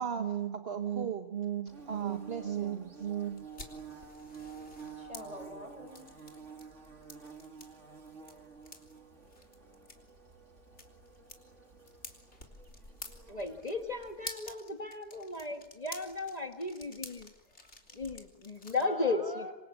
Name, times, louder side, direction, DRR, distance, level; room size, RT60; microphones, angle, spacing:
voice 1, 0.0-3.4, right 9 dB, 55° right, 6 dB, 1.5 m, -35 dB
Bird / Buzz, 1.7-14.3, right 5 dB, 70° right, 3.0 m, -51 dB
sound 1, 3.4-18.8, left 2 dB, 65° left, 3.8 m, -51 dB
voice 2, 5.0-6.1 17.5-18.0 18.8-19.5, equal, 30° right, 5 dB, 6.6 m, -44 dB
voice 3, 13.3-17.3 17.9-19.5, left 3 dB, 30° left, 5 dB, 1.7 m, -35 dB
27.0 x 26.5 x 8.4 m, 1.0 s
omnidirectional pair, 1.3 m